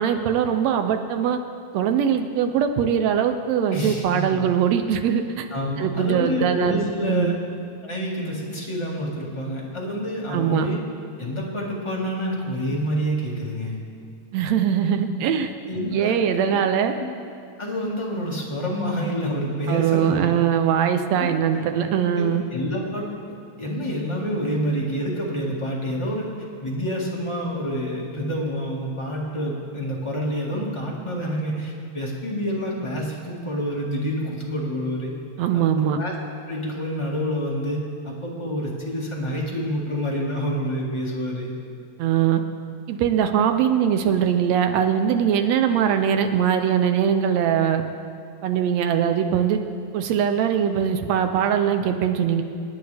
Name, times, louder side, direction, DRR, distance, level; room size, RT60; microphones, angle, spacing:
voice 1, 0.0-1.4 1.7-5.5 5.8-7.4 10.3-10.7 14.3-15.5 15.9-16.9 19.7-22.4 35.4-36.0 42.0-42.4 42.9-47.8 48.4-49.6 49.9-52.4, right 8 dB, 75° right, 7 dB, 1.7 m, -21 dB
voice 2, 3.7-4.4 5.5-7.3 7.8-10.8 11.2-13.8 15.7-16.5 17.6-20.3 21.2-23.1 23.6-26.3 26.6-35.1 35.5-35.7 36.0-36.1 36.5-41.5, equal, 15° left, -4 dB, 0.9 m, -28 dB
26.5 x 9.5 x 3.4 m, 2.4 s
omnidirectional pair, 3.5 m